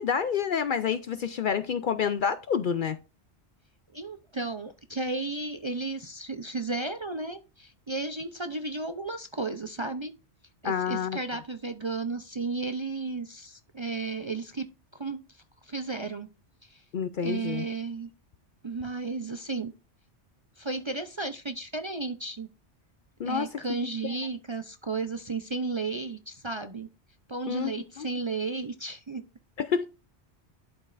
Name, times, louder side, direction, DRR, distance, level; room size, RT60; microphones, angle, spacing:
voice 1, 0.0-3.0 10.6-11.2 16.9-17.7 23.2-23.6 27.5-28.1 29.6-29.9, left 7 dB, 60° left, 0.6 m, -28 dB
voice 2, 3.9-10.1 10.6-15.2 15.6-16.3 16.6-16.8 17.2-18.1 18.6-19.7 20.6-22.5 23.2-26.9 27.3-29.2, right 3 dB, 35° right, 0.5 m, -33 dB
11.5 x 5.3 x 2.5 m
omnidirectional pair, 1.2 m